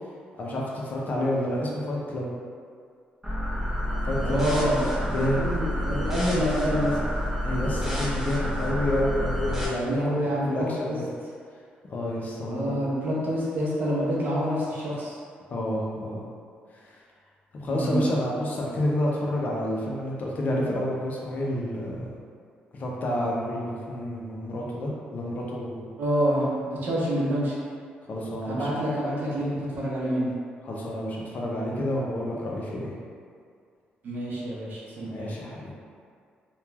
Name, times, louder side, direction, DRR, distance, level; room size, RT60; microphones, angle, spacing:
voice 1, 0.4-2.3 4.0-4.7 5.1-5.5 7.4-10.2 10.5-10.9 11.9-12.8 15.5-16.2 16.7-16.9 17.5-22.1 22.7-25.9 28.1-28.7 30.6-32.9 35.1-35.7, left 1 dB, 50° left, -3 dB, 0.5 m, -29 dB
sound 1, 3.2-9.7, equal, 10° right, 0.7 m, -28 dB
voice 2, 4.2-7.0 9.8-10.5 10.8-10.9 12.5-15.2 17.7-18.0 26.0-27.5 28.4-30.3 34.0-35.3, equal, 60° right, -5 dB, 0.7 m, -27 dB
2.9 x 2.3 x 2.3 m, 2.2 s
cardioid pair, 90°, 4 cm